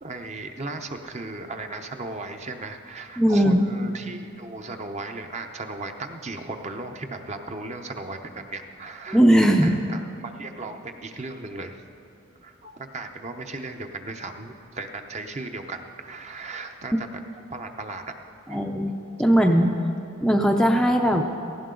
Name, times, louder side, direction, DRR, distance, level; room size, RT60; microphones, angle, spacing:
voice 1, 0.0-9.2 9.6-11.8 12.4-17.1 17.3-18.1 18.5-18.6, right 3 dB, 35° right, 5 dB, 0.7 m, -36 dB
voice 2, 3.2-3.6 9.1-9.7 18.5-18.9 19.2-19.8 20.2-21.2, equal, 5° left, 2 dB, 0.5 m, -18 dB
17.0 x 15.5 x 3.9 m, 2.6 s
head